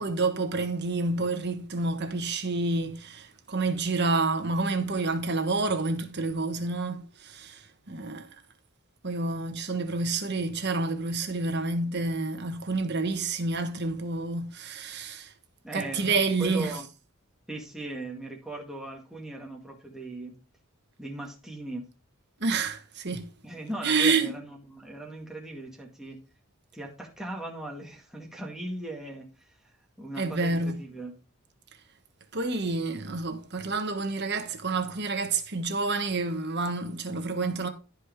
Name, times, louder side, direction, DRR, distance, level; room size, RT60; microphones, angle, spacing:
voice 1, 0.0-8.3 9.0-15.3 15.7-16.7 22.4-23.3 23.8-24.4 30.2-30.8 32.3-37.7, right 3 dB, 50° right, 1.4 m, -29 dB
voice 2, 15.6-16.9 17.5-20.3 21.0-21.9 23.4-26.2 26.7-31.1, right 2 dB, ahead, 2.0 m, -39 dB
14.0 x 5.0 x 3.6 m
head